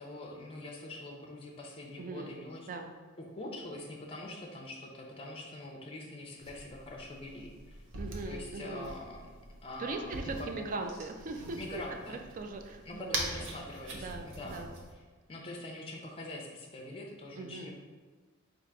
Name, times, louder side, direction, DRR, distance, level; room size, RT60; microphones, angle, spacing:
voice 1, 0.0-2.7 3.2-7.8 8.2-9.3 9.6-10.7 11.6-12.2 12.9-14.7 15.3-17.7, left 1 dB, 25° left, 0 dB, 0.5 m, -44 dB
voice 2, 2.0-2.4 2.7-2.9 7.9-8.9 9.8-11.8 12.1-13.2 13.9-14.8 17.4-17.7, right 3 dB, 40° right, 4 dB, 0.3 m, -40 dB
sound 1, 6.4-14.9, right 2 dB, 60° right, 0.7 m, -43 dB
3.7 x 2.5 x 4.5 m, 1.3 s
head